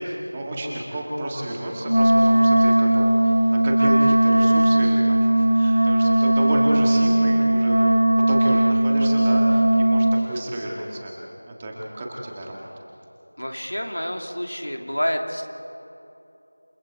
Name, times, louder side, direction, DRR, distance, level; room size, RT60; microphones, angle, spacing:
voice 1, 0.0-8.0 8.3-11.1 11.5-12.6, right 1 dB, 15° right, -2 dB, 1.8 m, -31 dB
Wind instrument woodwind instrument, 1.8-10.3, right 1 dB, 65° right, 1.1 m, -18 dB
voice 2, 13.4-15.4, equal, 85° left, 3 dB, 2.7 m, -28 dB
29.0 x 19.5 x 4.8 m, 3.0 s
figure-of-eight pair, 175°, 0 cm